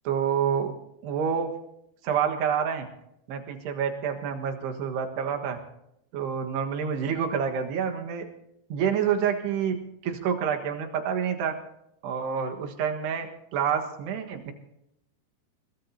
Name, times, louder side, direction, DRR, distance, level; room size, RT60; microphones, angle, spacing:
voice 1, 0.1-0.7 1.0-1.5 2.0-2.9 3.3-5.6 6.1-8.3 8.7-9.7 10.0-11.5 12.0-14.5, right 7 dB, 80° right, 4 dB, 3.7 m, -28 dB
22.0 x 20.5 x 2.9 m, 0.78 s
omnidirectional pair, 4.7 m